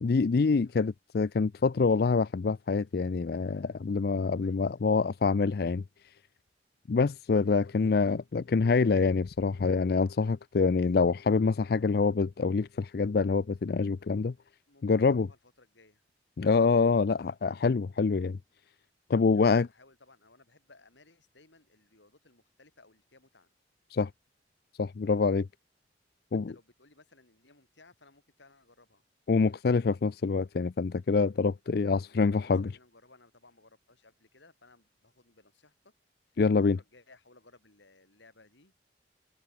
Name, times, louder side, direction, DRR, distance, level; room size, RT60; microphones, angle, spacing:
voice 1, 0.0-5.8 6.9-14.3 14.8-15.3 16.4-18.4 19.1-19.7 23.9-24.1 24.8-25.5 26.3-26.5 29.3-32.7 36.4-36.8, left 4 dB, 55° left, 0.4 m, -26 dB
voice 2, 4.4-4.9 6.9-7.1 7.5-7.9 14.7-16.0 19.3-23.5 26.3-29.0 32.0-35.9 36.5-38.7, left 3 dB, 80° left, 4.3 m, -60 dB
head